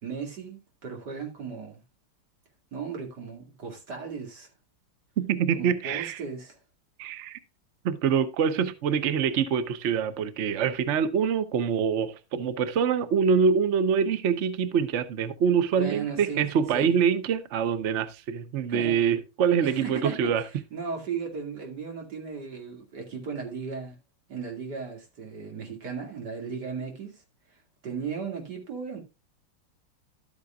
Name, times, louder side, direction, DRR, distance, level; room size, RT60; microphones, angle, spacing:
voice 1, 0.0-1.8 2.7-4.5 5.5-6.6 15.7-17.0 18.7-18.9 19.6-24.0 24.3-27.2 27.5-29.0, right 5 dB, 50° right, 2.9 m, -36 dB
voice 2, 5.2-6.2 7.0-7.4 7.8-20.4, right 7 dB, 80° right, 0.6 m, -25 dB
12.5 x 8.7 x 2.4 m
omnidirectional pair, 2.4 m